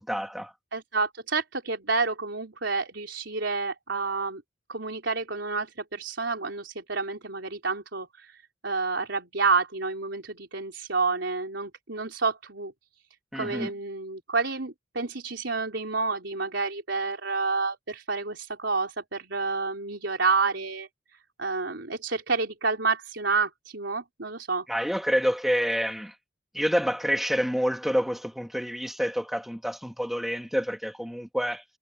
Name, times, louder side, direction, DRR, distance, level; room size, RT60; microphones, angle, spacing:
voice 1, 0.0-0.5 13.3-13.7 24.7-26.1 26.5-31.6, equal, ahead, 2.3 m, -28 dB
voice 2, 0.7-4.4 4.7-8.4 8.6-12.7 13.3-20.9 21.4-24.7, right 4 dB, 75° right, 3.9 m, -29 dB
head